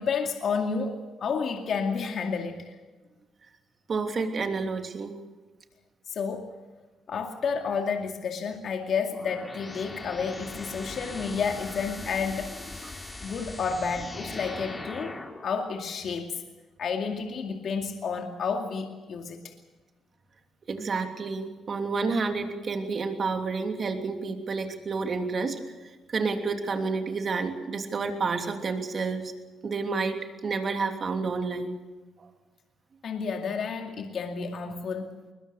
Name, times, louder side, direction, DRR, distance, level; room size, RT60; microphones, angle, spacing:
voice 1, 0.0-2.7 6.1-6.5 7.1-15.2 15.4-16.4 16.8-19.4 33.0-35.1, left 5 dB, 60° left, 3 dB, 2.3 m, -31 dB
voice 2, 3.9-5.2 20.7-25.6 26.1-29.3 29.6-30.2 30.4-31.7 32.2-32.3, right 4 dB, 45° right, 5 dB, 3.0 m, -29 dB
sound 1, 9.1-15.5, left 2 dB, 20° left, 3.3 m, -40 dB
22.0 x 21.0 x 6.9 m, 1.3 s
cardioid pair, 90°, 0 cm